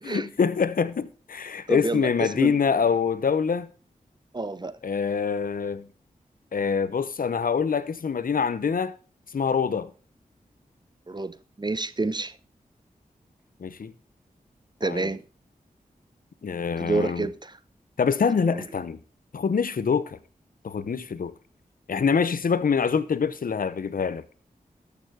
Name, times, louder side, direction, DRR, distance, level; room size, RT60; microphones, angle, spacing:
voice 1, 0.0-3.7 4.8-5.8 6.5-8.9 9.3-9.9 13.6-13.9 14.8-15.1 16.4-17.3 18.0-19.0 19.3-20.2 20.6-21.3 21.9-24.2, left 6 dB, 70° left, 0.8 m, -25 dB
voice 2, 1.7-2.6 4.3-4.7 11.1-12.3 14.8-15.2 16.8-17.5 18.5-18.6, right 3 dB, 30° right, 0.7 m, -29 dB
13.0 x 6.9 x 4.9 m
cardioid pair, 55°, 15 cm